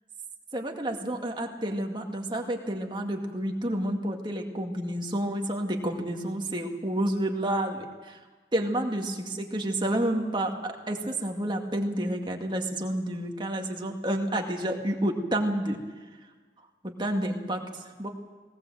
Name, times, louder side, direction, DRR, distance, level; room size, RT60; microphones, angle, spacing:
voice 1, 0.5-8.2 8.5-15.8 16.8-17.6 18.0-18.1, right 1 dB, 25° right, 2 dB, 2.1 m, -29 dB
19.0 x 19.0 x 7.7 m, 1.4 s
head